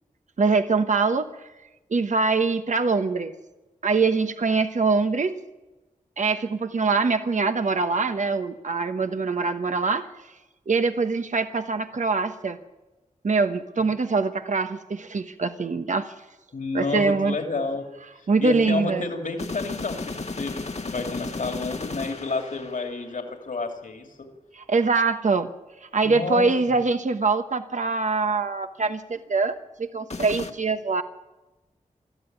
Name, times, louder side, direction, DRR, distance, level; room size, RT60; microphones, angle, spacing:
voice 1, 0.4-1.5 1.9-3.3 3.8-5.3 6.2-10.1 10.7-12.6 13.2-16.1 16.7-17.4 18.3-19.1 24.5-25.5 25.8-31.0, right 4 dB, 60° right, 8 dB, 1.1 m, -23 dB
voice 2, 16.5-17.9 18.2-24.1 26.0-26.8, left 3 dB, 65° left, 4 dB, 2.6 m, -30 dB
sound 1, 19.4-23.4 30.1-30.5, left 3 dB, 50° left, 1.5 m, -34 dB
21.0 x 13.5 x 9.3 m, 1.1 s
wide cardioid pair, 60°, 14 cm